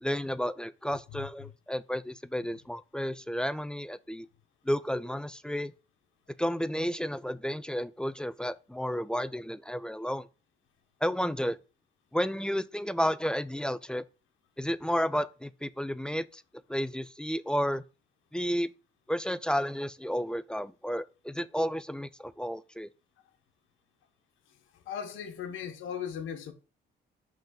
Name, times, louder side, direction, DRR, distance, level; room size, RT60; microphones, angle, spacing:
voice 1, 0.0-4.3 4.7-5.7 6.4-10.3 11.0-11.6 12.1-14.0 14.6-16.4 16.7-17.8 18.3-18.7 19.1-22.9, equal, 5° left, 0.3 m, -32 dB
voice 2, 24.9-26.5, left 8 dB, 85° left, 1.1 m, -37 dB
5.6 x 3.8 x 5.1 m
cardioid pair, 90°, 20 cm